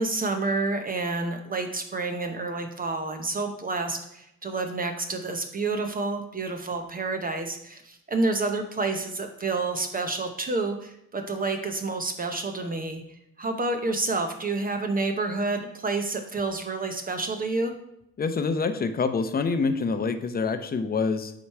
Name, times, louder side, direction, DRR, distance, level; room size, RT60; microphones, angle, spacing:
voice 1, 0.0-13.0 13.4-17.7, right 3 dB, 30° right, 5 dB, 0.7 m, -29 dB
voice 2, 18.2-21.3, left 4 dB, 30° left, 9 dB, 0.7 m, -26 dB
8.3 x 3.1 x 4.6 m, 0.81 s
cardioid pair, 90°, 30 cm